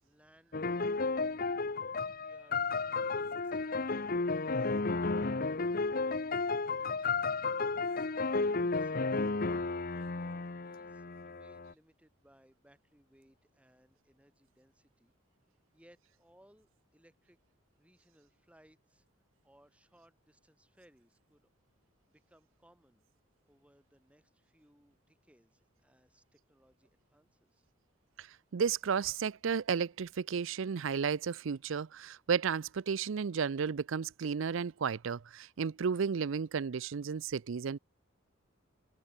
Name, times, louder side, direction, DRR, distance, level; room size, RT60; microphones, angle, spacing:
voice 1, 0.0-1.4 2.1-9.3 9.5-15.1 15.7-17.4 17.8-19.1 19.4-21.5 22.1-23.0 23.4-27.7, equal, 5° right, 6.8 m, -66 dB
sound 1, 0.5-11.7, left 3 dB, 45° left, 0.9 m, -33 dB
voice 2, 28.5-37.8, right 6 dB, 70° right, 0.5 m, -33 dB
head